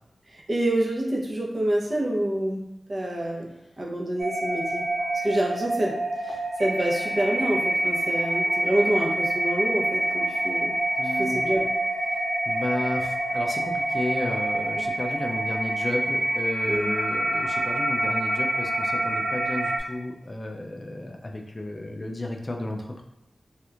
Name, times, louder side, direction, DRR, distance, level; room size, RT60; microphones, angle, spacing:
voice 1, 0.3-2.6 2.9-3.5 3.8-4.9 5.2-6.0 6.2-10.7 11.0-11.7 16.7-16.9, right 1 dB, 40° right, -2 dB, 0.7 m, -27 dB
sound 1, 4.2-19.8, right 1 dB, 90° right, 0.5 m, -27 dB
voice 2, 11.0-11.4 12.5-23.0, left 1 dB, 30° left, 1 dB, 0.3 m, -32 dB
3.2 x 2.9 x 2.4 m, 0.89 s
wide cardioid pair, 110°, 0 cm